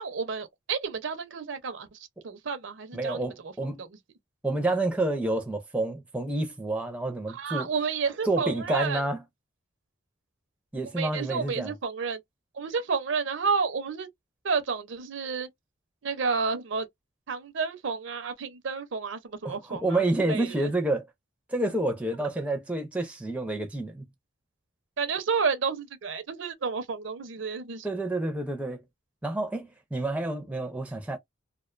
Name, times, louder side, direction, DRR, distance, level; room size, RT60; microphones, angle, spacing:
voice 1, 0.0-2.0 2.2-3.2 3.8-4.0 7.3-9.0 11.0-12.2 12.5-14.1 14.4-15.5 16.0-16.9 17.3-20.7 25.0-27.9, right 5 dB, 65° right, 0.5 m, -30 dB
voice 2, 2.9-3.8 4.4-7.7 8.2-9.2 10.7-11.7 19.4-21.1 21.5-24.0 27.8-28.8 29.2-31.2, right 2 dB, 5° right, 0.4 m, -29 dB
2.4 x 2.2 x 2.4 m
head